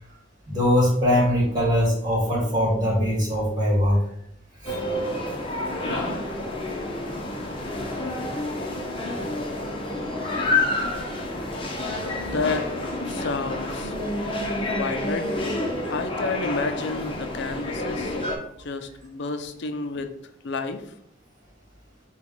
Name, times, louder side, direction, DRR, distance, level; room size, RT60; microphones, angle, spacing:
voice 1, 0.5-4.0 4.6-4.8, equal, 20° right, -5 dB, 1.8 m, -21 dB
sound 1, 4.7-18.4, left 2 dB, 30° left, 0.8 m, -29 dB
voice 2, 12.2-12.6 13.1-13.9 14.7-15.3 15.9-18.1 18.6-20.1 20.4-20.8, left 4 dB, 65° left, 8 dB, 0.5 m, -30 dB
5.9 x 2.3 x 3.8 m, 0.70 s
head